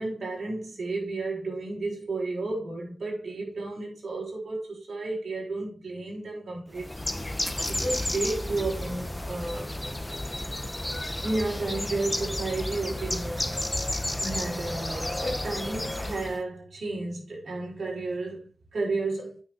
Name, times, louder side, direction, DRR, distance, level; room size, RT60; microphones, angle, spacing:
voice 1, 0.0-7.2 7.7-9.7 11.2-13.6 14.2-19.4, right 2 dB, 75° right, 4.6 m, -32 dB
Bird, 6.7-16.4, left 1 dB, 10° left, 0.9 m, -32 dB
9.0 x 5.1 x 4.8 m
wide cardioid pair, 135°, 0 cm